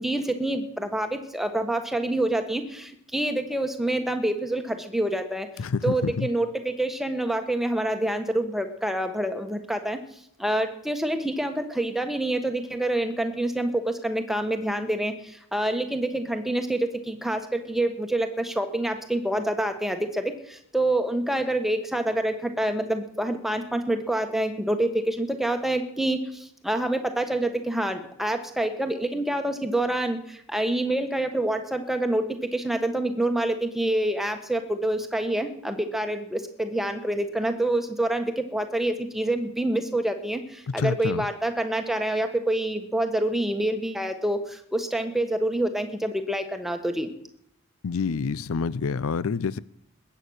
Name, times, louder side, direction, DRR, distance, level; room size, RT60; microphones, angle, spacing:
voice 1, 0.0-5.5 5.8-10.0 10.4-32.2 32.5-47.1, right 1 dB, ahead, 1.3 m, -27 dB
voice 2, 5.6-6.3 40.7-41.3 47.8-49.6, left 5 dB, 75° left, 0.5 m, -27 dB
20.5 x 9.1 x 6.5 m
head